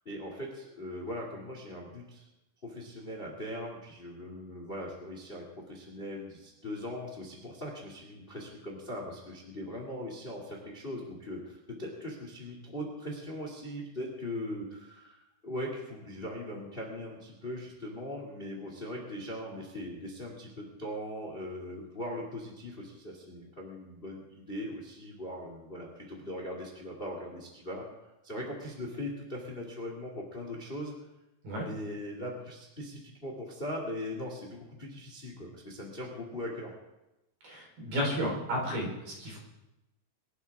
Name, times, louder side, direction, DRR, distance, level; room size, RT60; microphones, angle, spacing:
voice 1, 0.0-2.2 2.6-27.8 28.2-31.0 31.5-36.7, left 1 dB, 25° left, 0 dB, 1.2 m, -40 dB
voice 2, 37.4-39.4, equal, 50° right, -2 dB, 5.5 m, -32 dB
24.5 x 12.0 x 3.6 m, 0.96 s
omnidirectional pair, 5.3 m